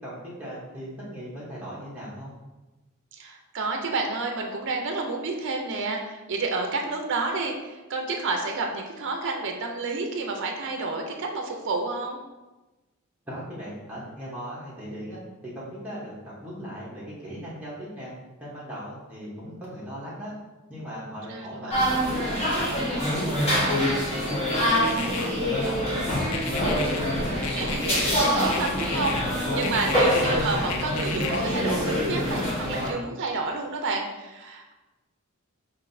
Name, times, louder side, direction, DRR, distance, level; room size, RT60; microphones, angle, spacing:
voice 1, 0.0-2.3 13.3-18.1 18.4-20.3 20.7-24.0 24.3-26.7, equal, 5° right, -9 dB, 0.9 m, -38 dB
voice 2, 3.1-12.2 21.3-21.9 27.5-34.7, right 3 dB, 55° right, 2 dB, 0.5 m, -30 dB
sound 1, 21.7-32.9, equal, 30° left, 1.1 m, -25 dB
sound 2, 24.5-25.3 26.3-27.0 27.4-28.2 28.5-29.2 29.6-30.4 30.7-32.1, left 7 dB, 65° left, 0.4 m, -34 dB
5.9 x 2.5 x 2.6 m, 1.1 s
head